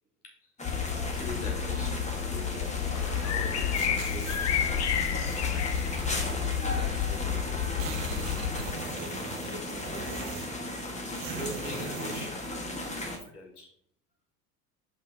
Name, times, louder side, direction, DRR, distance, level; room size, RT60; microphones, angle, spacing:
sound 1, 0.6-8.7, left 8 dB, 35° left, 0.8 m, -30 dB
sound 2, 0.6-13.2, left 1 dB, 15° left, 1.5 m, -36 dB
voice 1, 1.1-2.7 3.1-4.5 11.3-12.4 13.1-13.7, left 2 dB, 85° left, 1 dB, 2.1 m, -42 dB
sound 3, 3.7-4.5 5.0-5.9 6.8-6.9 7.1-7.2 7.5-10.6 11.1-12.3, right 5 dB, 50° right, 1.2 m, -41 dB
voice 2, 6.0-8.2 9.0-10.4, equal, 10° right, 2 dB, 1.5 m, -47 dB
5.4 x 5.2 x 5.2 m, 0.64 s
hypercardioid pair, 80°, 45 cm